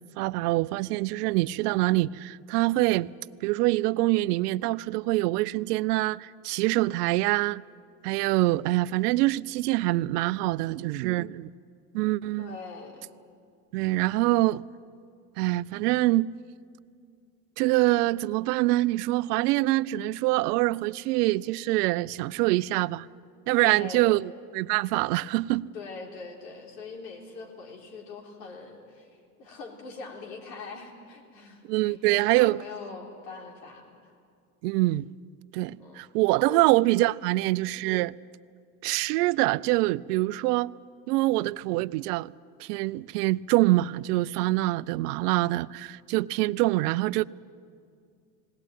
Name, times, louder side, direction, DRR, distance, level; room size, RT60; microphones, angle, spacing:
voice 1, 0.2-3.1 3.4-7.6 8.0-11.5 11.9-12.6 13.7-14.6 15.4-16.4 17.6-23.1 23.5-25.7 31.7-32.6 34.6-35.1 35.5-38.1 38.8-40.7 41.1-42.3 42.6-47.3, right 18 dB, 70° right, 0.6 m, -25 dB
voice 2, 12.4-13.0 23.6-24.2 25.7-29.1 29.4-34.1 35.8-36.0 36.5-36.6 37.2-37.5, left 4 dB, 85° left, 3.7 m, -42 dB
20.0 x 18.0 x 9.1 m
hypercardioid pair, 90°, 48 cm